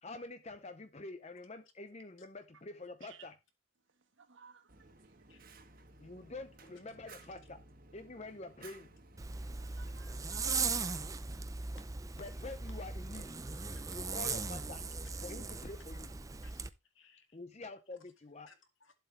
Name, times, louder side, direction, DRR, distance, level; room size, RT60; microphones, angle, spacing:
voice 1, 0.0-3.3 6.0-7.6 7.9-8.9 12.2-13.3 13.9-14.8 15.2-16.1 17.3-18.5, left 2 dB, 30° left, 0.7 m, -47 dB
voice 2, 3.8-6.2 8.2-8.3 9.3-11.8, right 7 dB, 65° right, 1.5 m, -62 dB
Fire, 4.7-10.8, right 3 dB, 45° right, 1.4 m, -57 dB
voice 3, 5.3-5.6 11.8-11.9 13.5-13.8 15.9-16.0 16.4-17.4 18.5-18.9, left 4 dB, 65° left, 2.1 m, -64 dB
Zipper (clothing), 9.2-16.7, right 4 dB, 15° right, 0.5 m, -38 dB
11.0 x 7.8 x 3.2 m
head